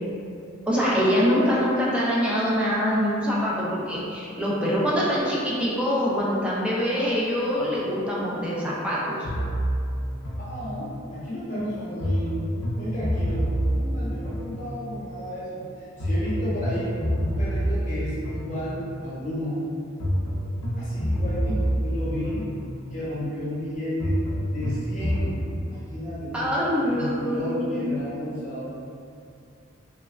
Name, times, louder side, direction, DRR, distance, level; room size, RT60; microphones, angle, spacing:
voice 1, 0.7-9.3 26.3-28.0, equal, 5° right, -6 dB, 0.4 m, -24 dB
sound 1, 9.2-11.1 12.0-15.1 16.0-19.1 20.0-23.0 24.0-25.4, equal, 85° left, 0.5 m, -27 dB
voice 2, 10.4-12.4 12.7-19.6 20.7-22.4 22.9-24.2 24.5-25.4 25.6-26.5 26.8-28.6, equal, 40° left, -10 dB, 0.9 m, -32 dB
2.9 x 2.2 x 2.3 m, 2.5 s
head